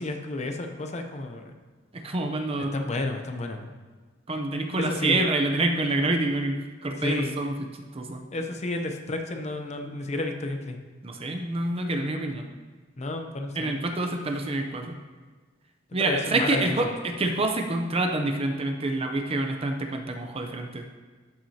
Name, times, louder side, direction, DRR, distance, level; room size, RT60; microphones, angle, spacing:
voice 1, 0.0-1.5 2.6-3.7 4.8-5.3 7.0-7.4 8.3-10.8 13.0-13.8 16.0-16.8, left 2 dB, 35° left, 5 dB, 0.6 m, -31 dB
voice 2, 1.9-2.7 4.3-7.5 7.9-8.2 11.0-12.5 13.5-14.9 15.9-20.8, right 2 dB, 30° right, 4 dB, 0.6 m, -27 dB
12.5 x 6.0 x 2.8 m, 1.4 s
head